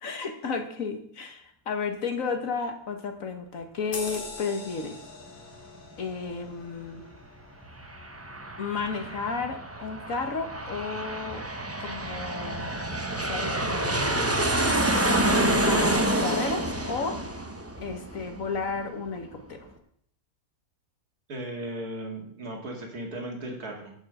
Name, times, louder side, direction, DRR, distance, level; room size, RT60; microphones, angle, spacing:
voice 1, 0.0-5.0 6.0-7.1 8.6-11.4 11.8-12.8 13.3-14.3 15.2-17.2 17.8-19.7, left 4 dB, 60° left, 5 dB, 1.7 m, -33 dB
sound 1, 3.9-8.9 9.3-9.5, left 3 dB, 35° left, 1.4 m, -43 dB
Aircraft, 7.6-18.8, right 1 dB, 15° right, 0.6 m, -28 dB
voice 2, 21.3-23.9, right 1 dB, 70° right, 1 dB, 2.5 m, -36 dB
8.9 x 5.4 x 7.7 m, 0.67 s
omnidirectional pair, 1.6 m